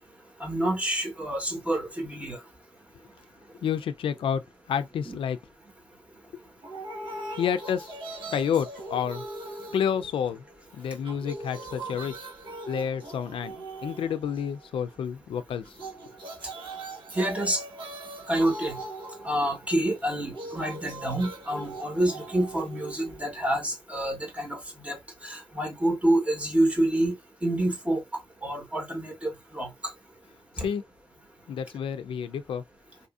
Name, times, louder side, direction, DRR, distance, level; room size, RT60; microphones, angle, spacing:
voice 1, 0.4-2.4 5.0-5.2 17.1-17.6 18.3-18.8 19.2-24.6 24.8-25.0 25.2-27.1 27.4-28.0 28.4-29.9 30.6-30.7, right 1 dB, 15° right, 1.2 m, -27 dB
voice 2, 3.6-4.4 4.7-5.4 7.4-7.9 8.3-9.2 9.7-10.4 10.7-12.2 12.7-15.8 30.6-30.8 31.5-32.6, left 8 dB, 75° left, 0.4 m, -29 dB
sound 1, 6.6-10.6 10.9-14.7 15.6-23.6, right 2 dB, 60° right, 1.1 m, -40 dB
4.0 x 2.6 x 2.4 m
wide cardioid pair, 145°, 9 cm